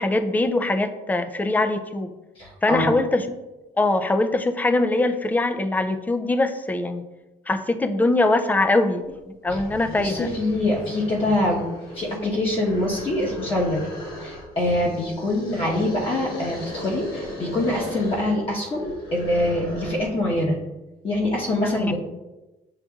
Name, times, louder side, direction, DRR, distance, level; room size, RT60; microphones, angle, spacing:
voice 1, 0.0-2.2 2.6-3.4 3.8-7.0 7.5-10.3 21.8-21.9, left 2 dB, 10° left, 9 dB, 0.3 m, -22 dB
voice 2, 2.4-3.0 9.5-9.6 10.0-13.8 14.2-20.6 21.0-22.0, left 1 dB, 30° left, -5 dB, 1.0 m, -24 dB
sound 1, 9.0-9.1 9.4-20.2, left 1 dB, 65° left, 1.3 m, -37 dB
7.6 x 2.6 x 2.3 m, 1.0 s
cardioid pair, 110°, 17 cm